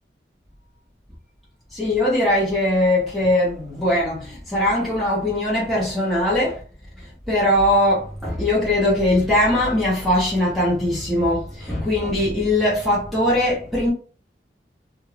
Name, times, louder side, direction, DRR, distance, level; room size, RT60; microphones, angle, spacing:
voice 1, 1.7-6.6 7.0-13.9, left 1 dB, ahead, 0.9 m, -20 dB
2.6 x 2.4 x 3.2 m
head